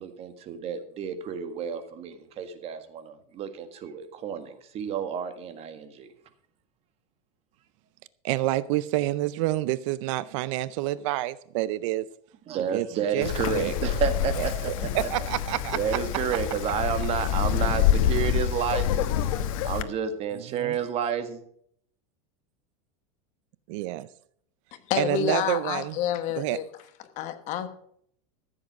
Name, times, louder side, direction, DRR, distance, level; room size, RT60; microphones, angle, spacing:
voice 1, 0.0-6.1 12.5-15.1 15.7-19.1 19.6-21.4, right 7 dB, 35° right, 9 dB, 1.7 m, -30 dB
voice 2, 8.2-12.1 12.7-13.7 14.4-15.8 20.5-20.8 23.7-24.1 25.0-26.0 26.4-26.6, right 16 dB, 60° right, 17 dB, 0.6 m, -28 dB
Wind, 13.2-19.8, left 10 dB, 75° left, 1.2 m, -27 dB
voice 3, 24.9-26.6 27.2-27.7, left 9 dB, 40° left, 10 dB, 1.4 m, -28 dB
14.5 x 7.8 x 6.1 m, 0.66 s
supercardioid pair, 150°, 18 cm